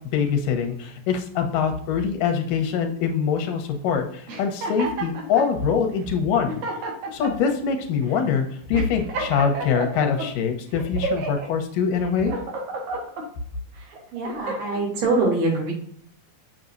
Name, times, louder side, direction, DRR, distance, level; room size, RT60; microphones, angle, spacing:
voice 1, 0.1-6.6 7.1-12.3, left 6 dB, 85° left, 5 dB, 2.7 m, -24 dB
sound 1, 4.3-5.5 6.1-6.2 6.5-7.5 8.1-8.3 8.7-10.3 10.8-11.5 12.0-13.3 13.8-14.8, right 3 dB, 65° right, 2.8 m, -31 dB
voice 2, 14.1-15.7, right 2 dB, 90° right, -3 dB, 4.6 m, -23 dB
7.6 x 6.5 x 2.7 m, 0.64 s
omnidirectional pair, 3.7 m